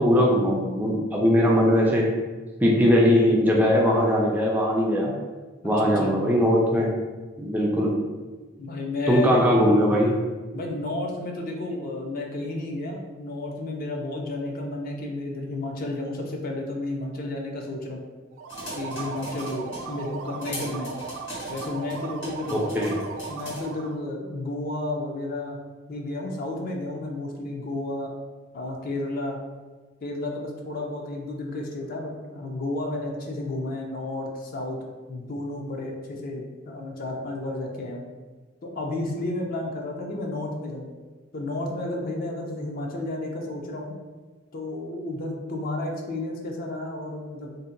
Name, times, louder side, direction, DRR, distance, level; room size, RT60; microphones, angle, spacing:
voice 1, 0.0-2.1 2.6-5.1 5.6-6.9 7.4-7.9 9.1-10.2 22.5-22.9, equal, 10° right, -2 dB, 0.3 m, -20 dB
voice 2, 5.6-6.1 8.6-9.5 10.5-18.0 18.8-20.9 21.5-22.8 23.3-25.6 25.9-28.1 28.5-29.4 30.0-34.8 35.1-38.0 38.6-40.9 41.3-44.0 44.5-47.5, left 2 dB, 50° left, 0 dB, 0.5 m, -32 dB
sound 1, 18.3-24.0, right 5 dB, 85° right, 0.3 m, -37 dB
sound 2, 18.5-19.9 20.4-23.6, left 1 dB, 65° left, 1.5 m, -40 dB
2.7 x 2.1 x 3.7 m, 1.3 s
head